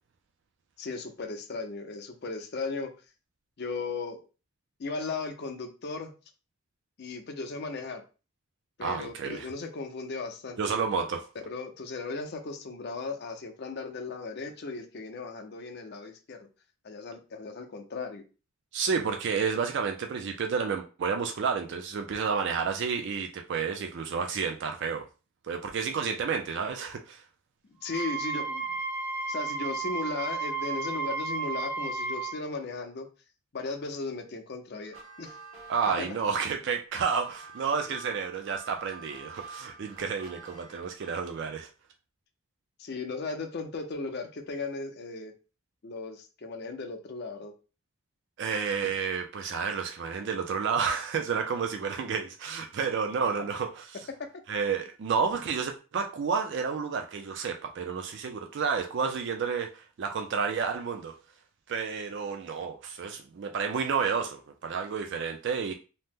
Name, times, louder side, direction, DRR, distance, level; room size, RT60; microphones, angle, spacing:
voice 1, 0.8-2.9 3.6-4.2 4.8-6.1 7.0-8.0 8.8-10.9 11.5-16.5 16.8-18.2 27.8-28.8 29.3-33.1 33.5-35.4 36.0-36.1 37.9-38.0 42.8-45.3 45.8-47.5, left 3 dB, 50° left, 5 dB, 0.5 m, -36 dB
voice 2, 8.8-9.5 10.6-11.2 18.7-25.0 25.5-27.2 35.7-41.7 48.4-53.9 54.5-61.2 61.7-65.7, right 6 dB, 55° right, 5 dB, 0.3 m, -30 dB
Wind instrument woodwind instrument, 27.9-32.4, right 4 dB, 5° right, 0.6 m, -33 dB
sound 1, 34.8-41.4, right 4 dB, 75° right, 0.9 m, -47 dB
2.8 x 2.0 x 3.4 m, 0.33 s
head